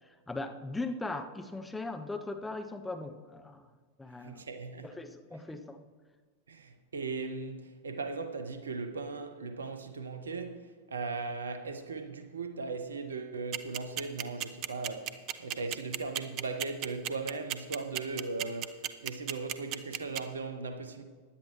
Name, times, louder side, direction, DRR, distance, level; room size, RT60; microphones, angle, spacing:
voice 1, 0.1-3.7 4.0-4.4 4.8-5.8, left 2 dB, 10° left, 0.7 m, -39 dB
voice 2, 4.2-5.0 6.5-21.0, right 4 dB, 70° right, 0.9 m, -38 dB
sound 1, 13.5-20.2, right 13 dB, 40° right, 0.5 m, -33 dB
16.0 x 10.5 x 3.1 m
figure-of-eight pair, 90°, 0 cm